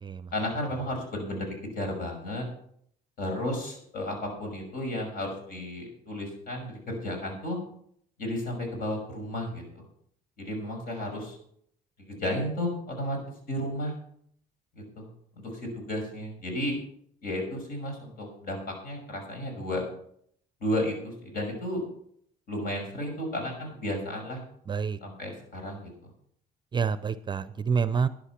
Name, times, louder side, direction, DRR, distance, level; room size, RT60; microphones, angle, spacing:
voice 1, 0.3-2.5 3.2-7.6 8.2-9.8 10.4-11.4 12.0-13.2 13.5-13.9 14.7-15.1 15.4-16.8 17.2-19.8 20.6-21.8 22.5-24.4 25.0-25.9, left 1 dB, 60° left, 2 dB, 6.1 m, -33 dB
voice 2, 24.7-25.0 26.7-28.1, right 6 dB, 25° right, 14 dB, 0.6 m, -28 dB
11.5 x 10.5 x 5.9 m, 0.68 s
cardioid pair, 110°, 17 cm